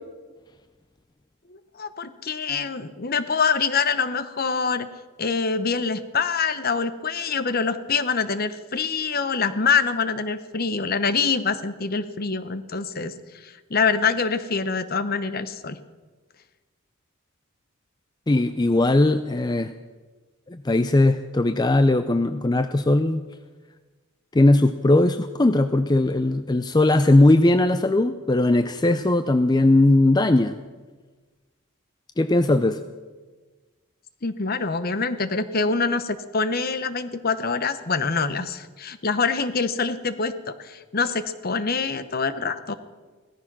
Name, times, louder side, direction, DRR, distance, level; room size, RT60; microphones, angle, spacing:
voice 1, 1.5-4.9 5.2-15.8 34.2-42.7, left 5 dB, 45° left, 12 dB, 0.9 m, -25 dB
voice 2, 18.3-19.7 20.5-23.2 24.3-30.6 32.2-32.8, left 2 dB, 20° left, 10 dB, 0.4 m, -19 dB
17.0 x 14.0 x 6.1 m, 1.4 s
head